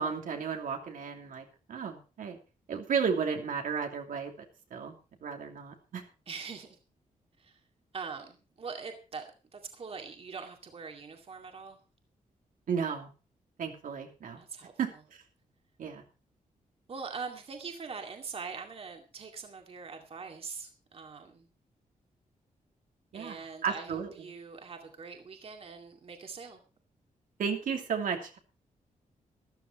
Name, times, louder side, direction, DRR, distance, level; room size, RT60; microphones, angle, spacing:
voice 1, 0.0-2.4 2.7-4.3 4.7-4.9 5.2-6.0 12.7-13.1 13.6-14.4 14.8-15.2 15.8-16.0 23.1-24.3 27.4-28.4, right 6 dB, 80° right, 3 dB, 2.9 m, -33 dB
voice 2, 6.3-6.8 7.4-7.6 7.9-11.8 14.3-14.7 16.9-21.5 23.1-26.6, right 5 dB, 45° right, 4 dB, 2.3 m, -43 dB
14.0 x 13.0 x 4.2 m, 0.33 s
wide cardioid pair, 145°, 14 cm